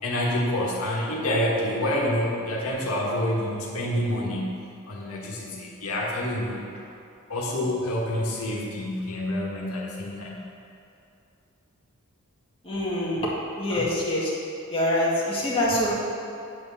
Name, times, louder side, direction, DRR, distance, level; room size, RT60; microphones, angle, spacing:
voice 1, 0.0-4.5 4.9-6.6 7.3-10.4, left 1 dB, 90° left, -3 dB, 1.4 m, -27 dB
voice 2, 12.6-13.3 13.6-14.3 14.7-15.9, left 1 dB, 25° left, -7 dB, 1.9 m, -25 dB
8.6 x 4.3 x 7.1 m, 2.6 s
head